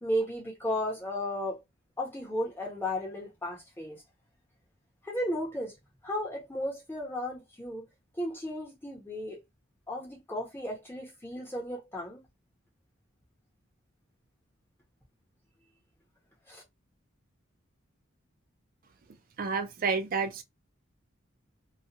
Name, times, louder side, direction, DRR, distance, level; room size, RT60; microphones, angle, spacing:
voice 1, 0.0-1.6 2.0-4.0 5.0-5.7 6.0-7.9 8.2-9.4 9.9-12.2 16.5-16.6, equal, 10° left, 0.9 m, -34 dB
voice 2, 19.4-20.4, right 5 dB, 45° right, 0.4 m, -29 dB
2.3 x 2.2 x 2.8 m
head